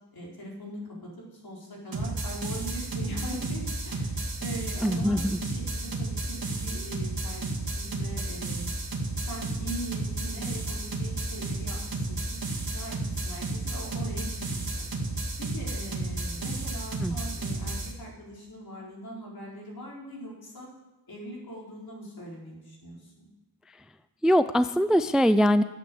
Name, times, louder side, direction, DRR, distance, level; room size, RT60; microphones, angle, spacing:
voice 1, 0.1-8.6 9.2-12.4 12.7-14.8 15.4-20.7 21.1-23.3, right 1 dB, 65° left, -3 dB, 4.5 m, -41 dB
sound 1, 1.9-17.9, right 2 dB, 60° right, 2.4 m, -32 dB
voice 2, 4.8-5.4 17.0-17.2 24.2-25.6, equal, ahead, 13 dB, 0.4 m, -22 dB
11.5 x 8.5 x 7.6 m, 1.0 s
wide cardioid pair, 70°, 39 cm